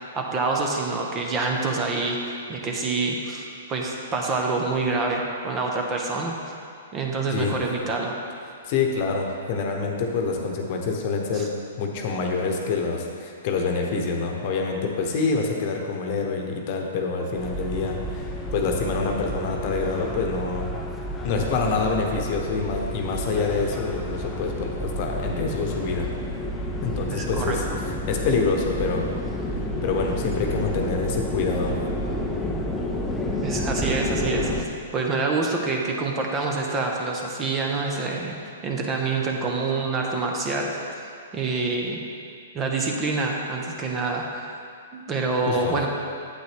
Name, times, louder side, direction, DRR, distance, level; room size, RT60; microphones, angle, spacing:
voice 1, 0.1-6.4 6.9-8.1 11.3-11.5 27.1-27.8 33.4-34.7 34.9-38.4 38.6-40.9 41.3-42.0 42.5-44.6 44.9-45.9, right 3 dB, 25° right, 0 dB, 1.0 m, -26 dB
voice 2, 8.6-11.5 11.8-20.7 21.2-26.1 26.8-27.6 28.1-29.1 29.8-31.7 45.5-45.8, left 4 dB, 45° left, 1 dB, 1.1 m, -26 dB
sound 1, 17.4-34.6, equal, 10° left, 0.7 m, -30 dB
8.9 x 7.9 x 3.5 m, 2.3 s
figure-of-eight pair, 115°, 0 cm